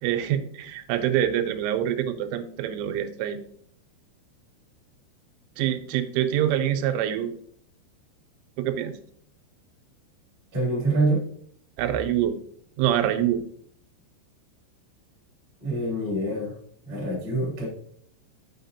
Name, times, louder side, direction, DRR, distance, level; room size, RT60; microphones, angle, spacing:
voice 1, 0.0-3.4 5.6-7.3 8.6-9.0 11.8-12.4 12.8-13.4, right 11 dB, 90° right, 9 dB, 3.1 m, -25 dB
voice 2, 10.5-11.2 15.6-16.5 16.8-17.7, right 2 dB, 20° right, -5 dB, 2.5 m, -25 dB
6.5 x 6.4 x 2.7 m, 0.62 s
omnidirectional pair, 5.5 m